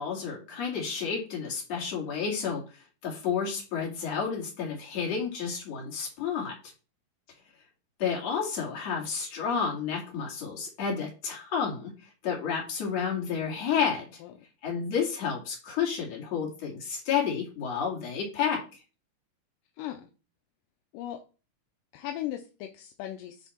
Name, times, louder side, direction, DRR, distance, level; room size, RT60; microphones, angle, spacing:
voice 1, 0.0-2.6 3.0-6.5 8.0-11.9 12.2-14.0 14.6-18.8, left 6 dB, 45° left, -1 dB, 3.4 m, -30 dB
voice 2, 19.8-20.1 20.9-21.2 21.9-23.5, left 12 dB, 80° left, 4 dB, 2.2 m, -37 dB
10.5 x 3.4 x 4.4 m, 0.33 s
omnidirectional pair, 4.3 m